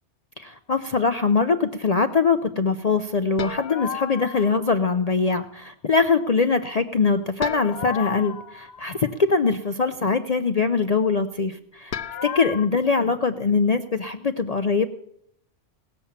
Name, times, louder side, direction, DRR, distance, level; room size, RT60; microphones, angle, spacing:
voice 1, 0.4-12.0 12.2-14.9, left 4 dB, 45° left, 8 dB, 0.6 m, -22 dB
sound 1, 3.4-4.7 7.4-9.3 11.9-12.7, left 8 dB, 65° left, 0.9 m, -33 dB
18.5 x 7.0 x 7.2 m, 0.73 s
omnidirectional pair, 1.2 m